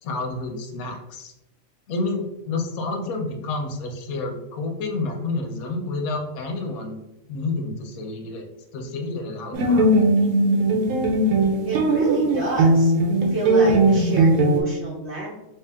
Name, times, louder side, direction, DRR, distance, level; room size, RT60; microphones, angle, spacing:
voice 1, 0.0-1.3 1.9-7.0 7.3-8.4 8.7-10.4, left 3 dB, 85° left, 3 dB, 1.1 m, -29 dB
sound 1, 9.5-14.6, right 2 dB, 80° right, 1.1 m, -18 dB
voice 2, 11.7-12.9 13.3-15.4, right 3 dB, 60° right, -5 dB, 0.8 m, -29 dB
3.0 x 2.8 x 3.4 m, 0.90 s
omnidirectional pair, 1.5 m